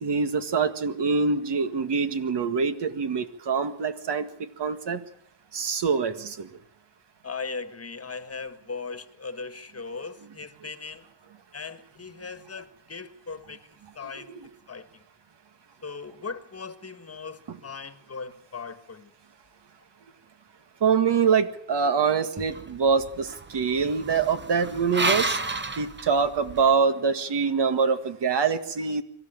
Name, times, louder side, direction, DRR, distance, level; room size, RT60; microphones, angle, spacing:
voice 1, 0.0-5.0 5.5-6.5 14.3-14.4 20.8-25.4 25.8-29.0, right 5 dB, 55° right, 9 dB, 1.9 m, -25 dB
voice 2, 7.2-11.0 11.5-14.3 14.7-14.9 15.8-19.1, left 4 dB, 30° left, 11 dB, 1.7 m, -38 dB
sound 1, 22.4-26.7, right 3 dB, 20° right, 1.2 m, -31 dB
25.0 x 13.5 x 9.0 m, 0.69 s
cardioid pair, 110°, 50 cm